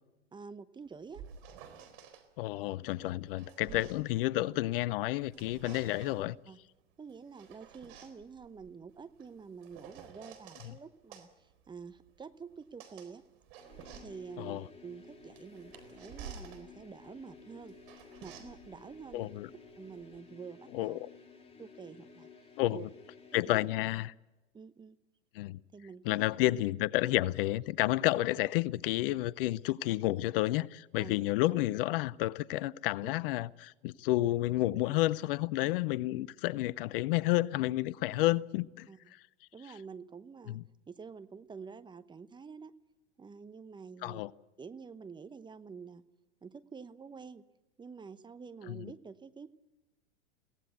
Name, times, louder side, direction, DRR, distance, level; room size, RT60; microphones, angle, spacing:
voice 1, 0.3-1.2 3.7-3.8 6.5-6.6 7.0-13.2 13.9-17.8 18.2-19.3 19.8-21.0 21.6-22.3 22.7-22.9 23.3-23.6 24.5-25.0 25.7-26.3 31.0-31.2 33.0-33.1 38.1-38.2 38.9-39.1 39.5-40.6 40.9-42.7 43.2-44.2 44.6-46.0 46.4-47.4 47.8-49.5, right 5 dB, 15° right, 0.8 m, -48 dB
sound 1, 0.8-2.2 3.0-4.8 5.2-6.3 7.1-10.7 11.1-20.2, right 7 dB, 55° right, 4.2 m, -52 dB
voice 2, 2.4-6.4 14.4-14.6 19.1-19.5 20.7-21.1 22.6-22.9 23.3-24.1 25.3-25.6 26.1-38.9 40.5-40.6 44.0-44.3 48.7-48.9, left 17 dB, 50° left, 0.6 m, -30 dB
sound 2, 13.6-23.9, left 5 dB, 15° left, 3.4 m, -55 dB
23.0 x 17.5 x 8.1 m
hypercardioid pair, 105°, 35 cm